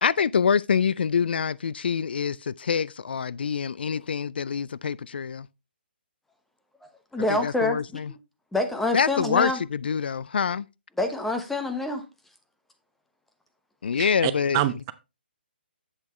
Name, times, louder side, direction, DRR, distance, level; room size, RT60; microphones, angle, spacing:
voice 1, 0.0-5.5 7.3-8.1 8.9-10.7 13.8-14.6, left 6 dB, 70° left, 0.3 m, -25 dB
voice 2, 7.1-8.0 8.5-9.6 11.0-12.0, left 2 dB, 5° left, 1.0 m, -26 dB
voice 3, 14.0-14.9, right 14 dB, 25° right, 0.6 m, -27 dB
8.0 x 6.9 x 3.1 m
hypercardioid pair, 145°, 6 cm